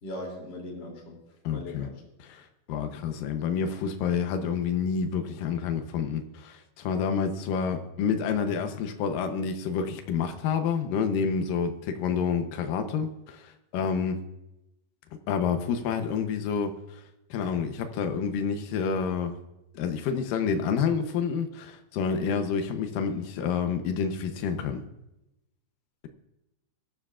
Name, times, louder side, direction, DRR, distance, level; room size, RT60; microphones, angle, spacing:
voice 1, 0.0-1.2 1.5-1.9, left 1 dB, 30° left, -1 dB, 2.9 m, -39 dB
voice 2, 1.4-1.9 2.2-14.2 15.3-17.0 17.3-19.4 19.7-24.8, left 6 dB, 85° left, 6 dB, 1.9 m, -29 dB
21.5 x 12.0 x 2.5 m, 0.91 s
omnidirectional pair, 5.2 m